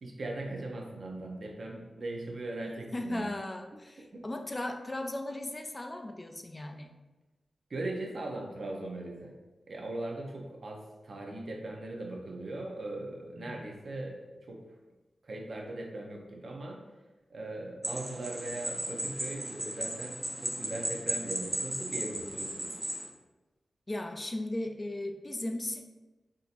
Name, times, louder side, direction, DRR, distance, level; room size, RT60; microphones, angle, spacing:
voice 1, 0.0-3.3 4.1-4.3 7.7-9.3 9.7-14.7 15.2-16.8 17.3-22.7, right 2 dB, 70° right, 0 dB, 0.6 m, -39 dB
voice 2, 2.9-6.9 13.4-13.6 23.9-25.9, left 1 dB, 30° left, 4 dB, 0.3 m, -37 dB
sound 1, 17.8-23.1, right 1 dB, 15° right, 0.7 m, -36 dB
3.7 x 2.7 x 2.4 m, 1.1 s
cardioid pair, 70°, 0 cm